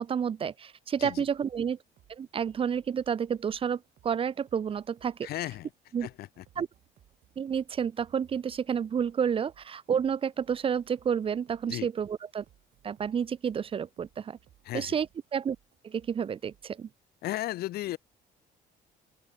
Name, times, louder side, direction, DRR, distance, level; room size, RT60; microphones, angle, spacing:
voice 1, 0.0-1.8 2.1-5.3 5.9-6.1 6.6-6.7 7.4-12.4 12.8-14.4 14.7-15.1 15.3-15.6 15.8-16.9, right 7 dB, 35° right, 0.6 m, -30 dB
sound 1, 1.0-16.9, right 11 dB, 60° right, 7.3 m, -64 dB
voice 2, 5.2-5.7 6.0-6.4 11.7-11.9 14.6-15.0 17.2-18.0, left 15 dB, 65° left, 0.6 m, -35 dB
open air
cardioid pair, 110°, 17 cm